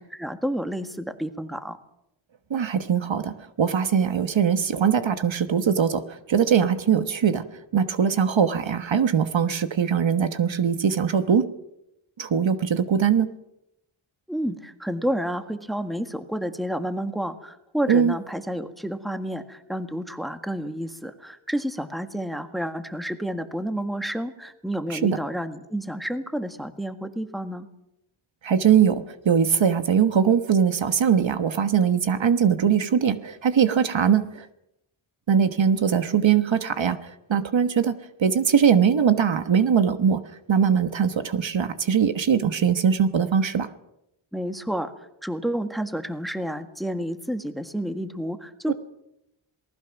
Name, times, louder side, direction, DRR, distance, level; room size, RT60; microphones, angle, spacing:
voice 1, 0.0-1.8 14.3-27.7 44.3-48.7, equal, ahead, 8 dB, 1.6 m, -30 dB
voice 2, 2.5-7.5 7.7-11.5 12.2-13.3 17.9-18.1 24.9-25.2 28.4-34.5 35.3-37.9 38.2-40.2 40.5-43.7 48.7-48.8, right 7 dB, 65° right, 10 dB, 1.3 m, -21 dB
27.5 x 19.5 x 6.0 m, 0.85 s
wide cardioid pair, 105°, 49 cm